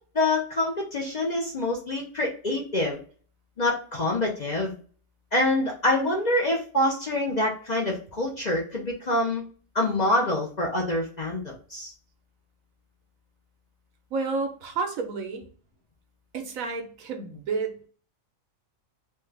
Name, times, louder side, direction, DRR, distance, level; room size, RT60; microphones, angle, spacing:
voice 1, 0.1-3.0 3.6-4.7 5.3-9.4 9.7-11.9, left 1 dB, 40° left, -2 dB, 0.7 m, -26 dB
voice 2, 14.1-15.4 16.3-17.9, right 4 dB, 75° right, 4 dB, 1.2 m, -30 dB
3.3 x 2.4 x 3.2 m, 0.41 s
omnidirectional pair, 1.4 m